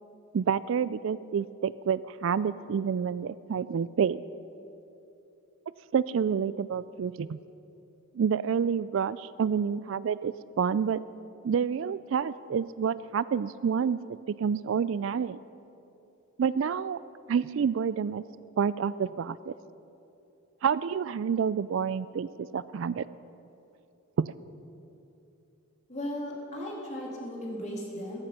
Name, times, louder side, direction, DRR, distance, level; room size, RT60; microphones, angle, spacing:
voice 1, 0.3-4.2 5.9-7.4 8.1-11.0 11.4-14.0 14.4-15.4 16.4-17.0 17.3-18.2 18.6-19.5 20.6-23.0 24.2-24.3, right 7 dB, 60° right, 17 dB, 0.3 m, -28 dB
voice 2, 25.9-28.2, left 1 dB, 30° left, -2 dB, 3.2 m, -36 dB
16.5 x 15.0 x 5.8 m, 2.8 s
head